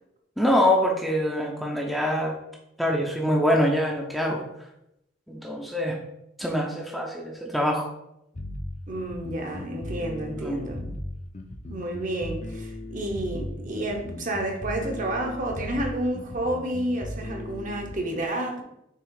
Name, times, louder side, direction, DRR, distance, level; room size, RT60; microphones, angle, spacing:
voice 1, 0.4-2.4 2.8-4.4 5.3-6.0 6.4-7.9 10.4-10.9, equal, ahead, -1 dB, 0.6 m, -25 dB
sound 1, 8.3-17.9, left 1 dB, 35° left, 0.7 m, -37 dB
voice 2, 8.9-10.8 11.7-18.6, right 1 dB, 40° right, 2 dB, 0.9 m, -30 dB
6.9 x 3.1 x 4.8 m, 0.83 s
head